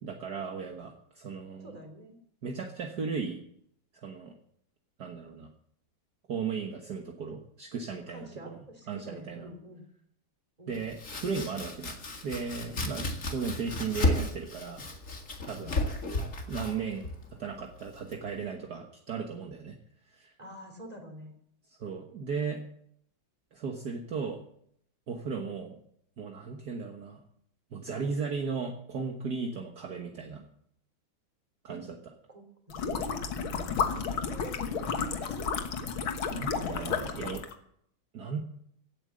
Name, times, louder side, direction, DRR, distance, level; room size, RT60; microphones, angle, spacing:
voice 1, 0.0-1.8 2.4-3.4 3.9-4.3 5.0-5.5 6.3-8.6 8.9-9.5 10.7-12.0 12.2-13.0 13.3-14.9 15.5-15.8 16.5-19.8 20.1-20.3 21.8-22.6 23.5-24.4 25.1-25.8 26.2-27.2 27.7-30.5 31.6-31.9 36.3-37.4 38.1-38.4, right 5 dB, 55° right, 2 dB, 1.8 m, -36 dB
voice 2, 1.6-2.2 8.1-9.9 10.6-10.9 12.7-12.9 15.6-15.8 20.4-21.3 31.7-31.8 32.3-33.2 33.5-35.5, equal, 20° right, 5 dB, 3.2 m, -46 dB
Domestic sounds home sounds, 10.7-18.4, left 2 dB, 40° left, 2.4 m, -34 dB
sound 1, 32.7-37.5, left 6 dB, 85° left, 2.2 m, -32 dB
16.5 x 8.9 x 7.6 m, 0.68 s
omnidirectional pair, 2.2 m